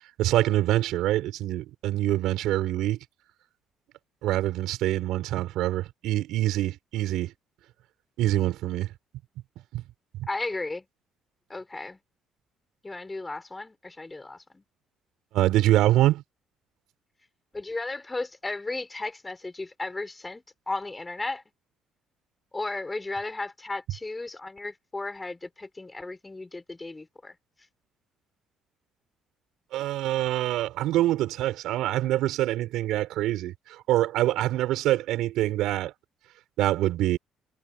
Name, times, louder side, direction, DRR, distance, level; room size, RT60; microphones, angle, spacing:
voice 1, 0.2-3.0 4.2-7.3 8.2-8.9 9.7-9.8 10.2-10.3 15.3-16.2 29.7-33.5 33.9-35.9 36.6-37.2, right 15 dB, 80° right, 5.4 m, -25 dB
voice 2, 10.3-10.9 11.5-12.0 12.8-14.6 17.5-21.4 22.5-27.4, left 2 dB, 20° left, 5.2 m, -35 dB
supercardioid pair, 80°, 0 cm